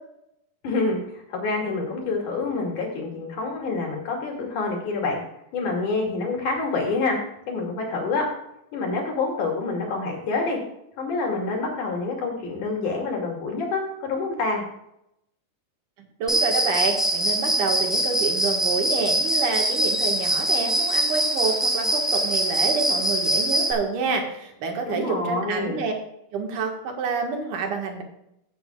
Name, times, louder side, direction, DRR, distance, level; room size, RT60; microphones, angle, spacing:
voice 1, 0.6-5.2 5.5-7.2 7.5-8.2 8.7-10.6 11.0-14.6 24.9-25.8, left 3 dB, 65° left, 0 dB, 4.0 m, -27 dB
voice 2, 16.0-25.9 26.3-28.0, right 5 dB, 70° right, 2 dB, 3.1 m, -28 dB
Cricket, 16.3-23.7, right 1 dB, ahead, 0.4 m, -23 dB
16.0 x 8.5 x 2.4 m, 0.80 s
omnidirectional pair, 3.8 m